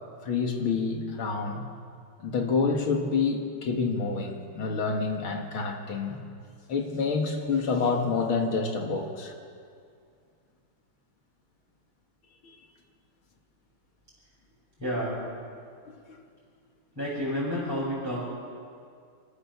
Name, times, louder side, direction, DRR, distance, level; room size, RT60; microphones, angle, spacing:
voice 1, 0.2-1.7 2.2-6.2 6.7-9.3 12.4-12.6 16.1-16.2, left 4 dB, 75° left, 3 dB, 2.6 m, -28 dB
voice 2, 14.8-15.2 16.9-18.2, equal, 5° right, -9 dB, 6.5 m, -30 dB
28.0 x 13.5 x 7.1 m, 2.3 s
omnidirectional pair, 2.3 m